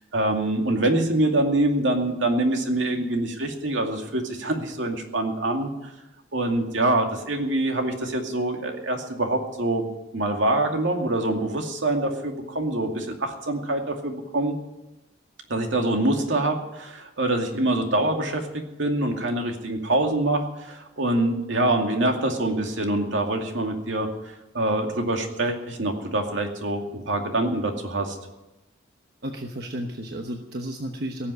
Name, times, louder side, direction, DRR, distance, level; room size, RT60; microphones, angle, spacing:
voice 1, 0.1-5.7 6.3-9.9 10.1-14.5 15.5-24.1 24.5-28.2, right 1 dB, 80° right, 3 dB, 2.4 m, -25 dB
voice 2, 29.2-31.3, right 1 dB, 55° right, 3 dB, 1.1 m, -32 dB
18.0 x 7.5 x 9.7 m, 0.98 s
head